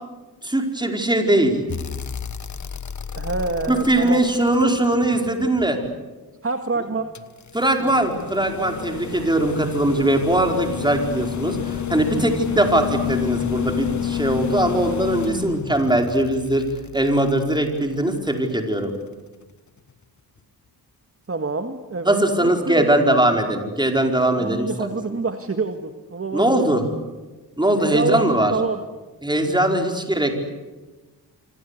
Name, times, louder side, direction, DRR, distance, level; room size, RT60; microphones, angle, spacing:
voice 1, 0.4-1.6 3.7-5.8 7.5-16.6 16.9-18.9 22.0-24.9 26.3-26.8 27.6-28.5 29.2-30.3, right 1 dB, 10° right, 4 dB, 4.7 m, -20 dB
sound 1, 1.7-5.9 7.2-18.3 19.9-20.0, left 9 dB, 45° left, 1.2 m, -30 dB
voice 2, 3.1-4.2 6.4-7.1 7.8-8.2 21.3-22.9 24.4-26.6 27.8-28.8 29.5-29.7, right 3 dB, 35° right, 6 dB, 1.8 m, -27 dB
26.5 x 26.0 x 8.3 m, 1.2 s
wide cardioid pair, 90°, 40 cm